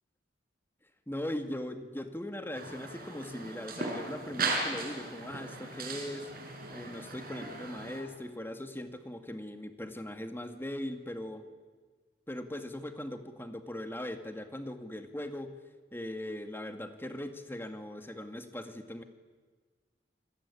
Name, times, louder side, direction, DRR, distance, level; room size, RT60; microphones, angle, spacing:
voice 1, 1.1-6.2 6.7-11.4 12.3-15.5 15.9-19.0, left 1 dB, 15° left, 7 dB, 2.1 m, -40 dB
sound 1, 2.5-8.0, right 3 dB, 55° right, 5.9 m, -37 dB
28.5 x 20.5 x 10.0 m, 1.4 s
head